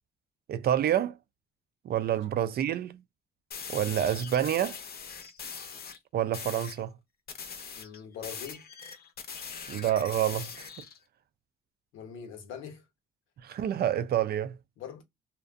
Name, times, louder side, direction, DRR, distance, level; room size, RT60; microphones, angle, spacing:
voice 1, 0.5-1.2 1.8-3.0 3.7-4.8 6.1-6.9 9.7-10.8 13.4-14.6, right 11 dB, 55° right, 0.4 m, -28 dB
sound 1, 3.5-6.0 6.3-6.8 7.3-11.0, left 6 dB, 50° left, 0.6 m, -41 dB
voice 2, 7.8-8.6 11.9-12.8 14.8-15.0, left 7 dB, 90° left, 0.8 m, -42 dB
2.6 x 2.1 x 2.4 m
cardioid pair, 90°, 20 cm